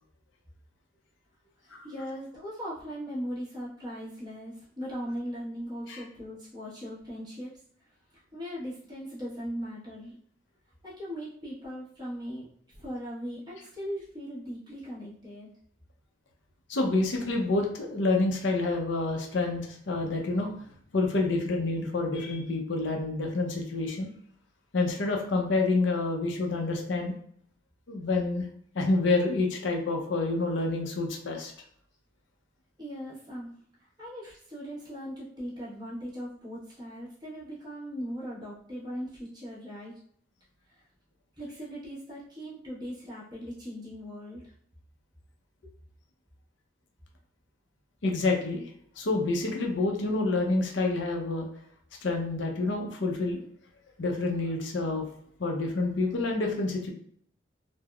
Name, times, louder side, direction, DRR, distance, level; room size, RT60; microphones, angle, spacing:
voice 1, 1.6-7.5 8.3-10.1 10.8-15.5 32.8-39.9 40.7-40.8 41.4-44.5, equal, 20° right, -9 dB, 1.0 m, -39 dB
voice 2, 16.7-20.5 20.9-24.1 24.7-27.1 27.9-28.4 28.7-31.5 48.0-48.6 49.0-51.5 52.0-53.4 54.0-55.1 55.4-56.9, left 3 dB, 60° left, 2 dB, 0.5 m, -28 dB
3.4 x 2.1 x 2.3 m, 0.63 s
head